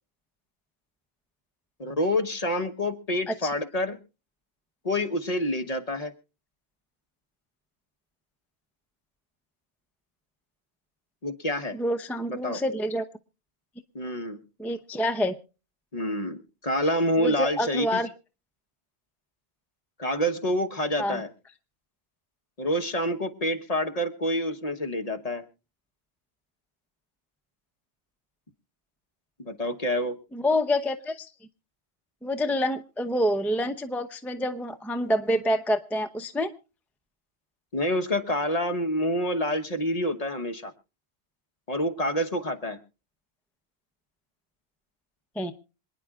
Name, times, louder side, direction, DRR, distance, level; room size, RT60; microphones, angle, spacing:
voice 1, 1.8-4.0 4.8-6.1 11.2-11.8 12.3-12.6 13.9-14.4 15.9-18.0 20.0-21.3 22.6-25.4 29.4-30.2 37.7-40.7 41.7-42.8, left 1 dB, 35° left, 5 dB, 1.2 m, -27 dB
voice 2, 11.7-13.0 14.6-15.3 17.2-18.1 21.0-21.2 30.3-31.3 32.2-36.5 45.4-45.5, left 1 dB, ahead, 7 dB, 0.7 m, -27 dB
26.5 x 10.0 x 2.4 m, 0.33 s
omnidirectional pair, 1.1 m